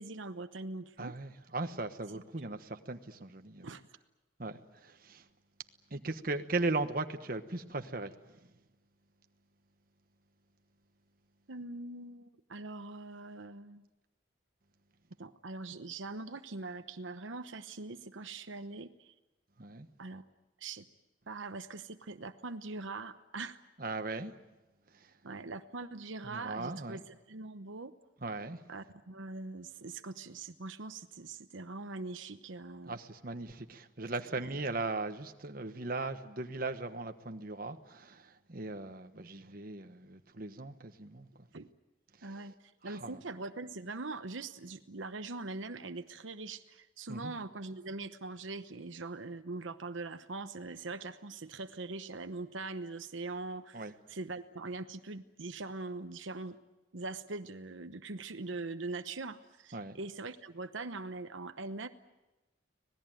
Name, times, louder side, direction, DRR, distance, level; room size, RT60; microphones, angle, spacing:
voice 1, 0.0-1.1 2.1-2.2 3.6-3.8 11.5-13.8 15.2-19.1 20.0-20.2 20.6-20.9 21.3-23.6 25.2-27.9 28.7-33.0 41.5-41.7 42.2-42.5 42.8-56.6 56.9-61.9, right 3 dB, 85° right, 9 dB, 1.0 m, -42 dB
voice 2, 1.0-3.7 4.4-5.2 5.9-8.1 19.6-19.9 23.8-24.3 24.9-25.1 26.2-27.0 28.2-28.6 32.9-41.5 42.2-42.4 42.8-43.2 47.1-47.3 53.7-53.9 59.7-60.0, right 3 dB, 50° right, 7 dB, 1.2 m, -38 dB
25.5 x 19.0 x 9.1 m, 1.0 s
head